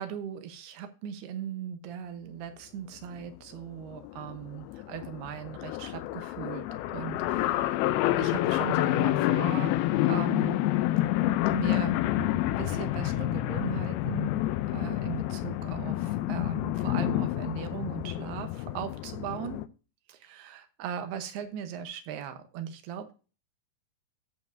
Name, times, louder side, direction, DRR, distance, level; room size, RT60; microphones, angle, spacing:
voice 1, 0.0-7.8 8.1-9.7 10.0-10.7 11.5-14.4 14.7-19.6 20.1-23.1, right 8 dB, 80° right, 9 dB, 3.0 m, -38 dB
sound 1, 3.1-3.3 3.6-3.7 3.8-19.7, left 15 dB, 80° left, 2.4 m, -28 dB
14.0 x 7.1 x 2.6 m, 0.34 s
omnidirectional pair, 4.6 m